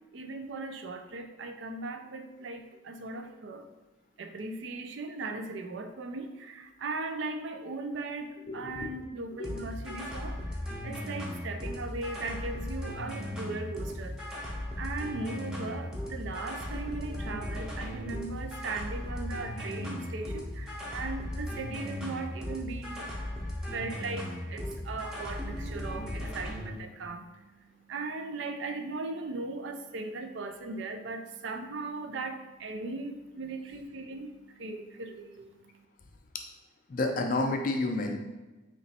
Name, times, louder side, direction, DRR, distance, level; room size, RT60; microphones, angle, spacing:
voice 1, 0.1-3.7 4.2-10.4 10.8-14.3 14.7-23.1 23.5-35.7, right 3 dB, 65° right, 6 dB, 0.4 m, -38 dB
voice 2, 8.5-8.9 9.4-9.5 36.9-38.2, left 2 dB, 45° left, 3 dB, 0.4 m, -30 dB
sound 1, 9.4-26.8, left 1 dB, 5° right, 0.6 m, -37 dB
3.1 x 2.9 x 4.2 m, 1.1 s
head